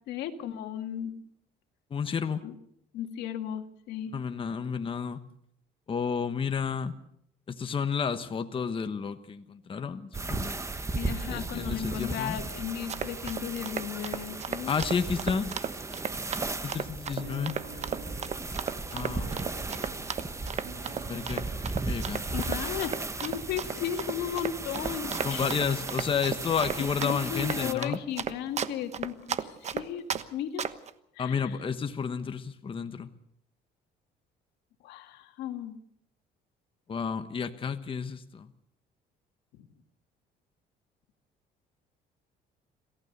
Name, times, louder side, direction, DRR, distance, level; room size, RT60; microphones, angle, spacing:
voice 1, 0.1-1.1 2.4-2.5 2.9-4.1 10.9-14.9 22.3-25.6 26.6-30.0 30.3-30.7 31.2-31.6 34.8-35.8 39.6-39.7, left 10 dB, 85° left, 6 dB, 2.1 m, -35 dB
voice 2, 1.9-2.4 4.1-5.2 5.9-7.0 7.5-10.5 11.3-12.4 14.6-15.5 16.6-17.6 18.9-19.3 21.1-21.5 21.9-22.2 25.2-28.0 31.2-33.1 36.9-38.5, left 6 dB, 30° left, 8 dB, 1.2 m, -31 dB
sound 1, 10.1-27.7, right 3 dB, 15° right, 1.3 m, -36 dB
Run, 12.7-30.2 30.6-30.9, right 7 dB, 40° right, 1.2 m, -34 dB
sound 2, 17.2-28.6, right 3 dB, 85° right, 3.6 m, -50 dB
27.5 x 15.5 x 6.7 m, 0.71 s
cardioid pair, 110°, 17 cm